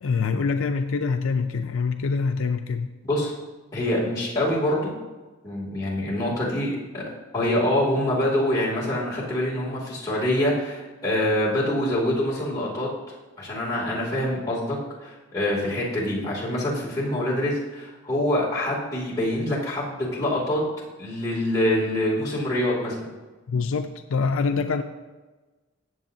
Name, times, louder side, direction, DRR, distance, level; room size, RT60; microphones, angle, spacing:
voice 1, 0.0-2.9 23.5-24.8, left 4 dB, 70° left, 6 dB, 0.4 m, -25 dB
voice 2, 3.7-4.9 5.4-7.0 7.3-12.9 13.4-20.6 21.0-23.0, left 1 dB, 15° left, -7 dB, 2.6 m, -25 dB
14.5 x 7.7 x 2.7 m, 1.2 s
head